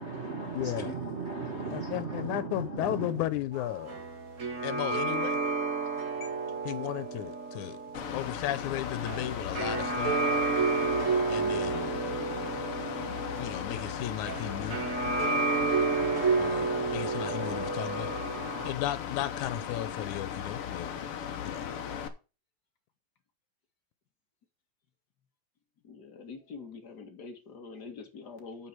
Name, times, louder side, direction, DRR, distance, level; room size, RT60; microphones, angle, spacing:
voice 1, 0.0-3.1, right 4 dB, 70° right, 0.6 m, -36 dB
voice 2, 0.5-1.0 1.7-4.0 4.6-5.4 6.7-7.8 8.1-10.1 11.3-11.9 13.4-14.8 16.4-18.1 18.6-20.9 21.4-21.7, left 13 dB, 90° left, 2.3 m, -35 dB
sound 1, 3.5-18.7, right 4 dB, 30° right, 1.7 m, -31 dB
Mechanical fan, 7.9-22.1, left 8 dB, 60° left, 1.8 m, -37 dB
voice 3, 25.8-28.7, left 4 dB, 40° left, 2.1 m, -45 dB
9.0 x 6.9 x 4.5 m
omnidirectional pair, 3.4 m